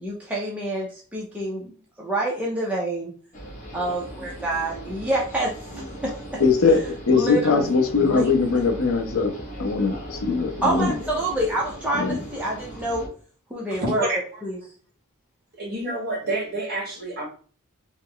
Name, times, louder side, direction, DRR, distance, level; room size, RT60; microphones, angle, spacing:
voice 1, 0.0-1.7 2.0-3.1 3.7-6.4 7.1-7.7 8.0-8.3 10.6-13.1 13.5-14.1 14.4-14.6, right 1 dB, 5° right, -5 dB, 0.6 m, -27 dB
sound 1, 3.3-13.1, right 1 dB, 35° left, 0.9 m, -38 dB
voice 2, 6.4-9.3 9.6-10.9 12.0-12.2, left 4 dB, 65° left, 4 dB, 0.6 m, -21 dB
voice 3, 13.7-14.2 15.6-17.2, right 1 dB, 45° right, -2 dB, 1.4 m, -28 dB
3.1 x 2.0 x 3.7 m, 0.42 s
head